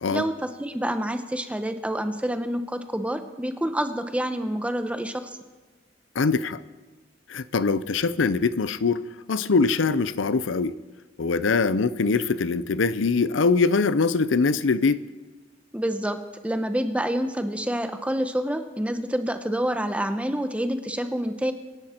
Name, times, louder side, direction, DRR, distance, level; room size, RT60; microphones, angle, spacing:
voice 1, 0.1-5.4 15.7-16.2 16.4-21.5, equal, 5° right, 8 dB, 0.9 m, -27 dB
voice 2, 6.1-6.6 7.3-10.7 11.2-15.0, left 4 dB, 85° left, 15 dB, 0.6 m, -23 dB
25.5 x 10.5 x 4.5 m, 1.3 s
head